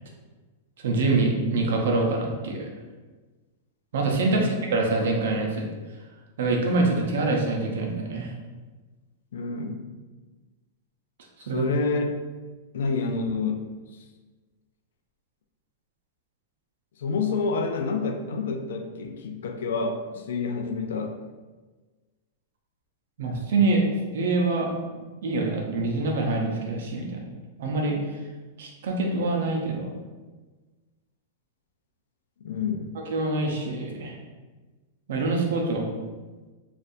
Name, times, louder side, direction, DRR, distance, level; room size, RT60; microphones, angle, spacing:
voice 1, 0.8-2.7 3.9-5.7 6.4-8.3 11.5-11.7 23.2-23.8 24.1-24.7 25.2-27.2 27.6-28.0 28.6-29.9 33.1-34.1 35.1-35.9, right 3 dB, 70° right, 0 dB, 0.7 m, -25 dB
voice 2, 9.3-9.8 11.4-12.1 12.7-13.7 17.0-21.2 32.4-32.9, left 4 dB, 85° left, 5 dB, 0.4 m, -28 dB
4.0 x 2.5 x 2.6 m, 1.3 s
supercardioid pair, 170°, 0 cm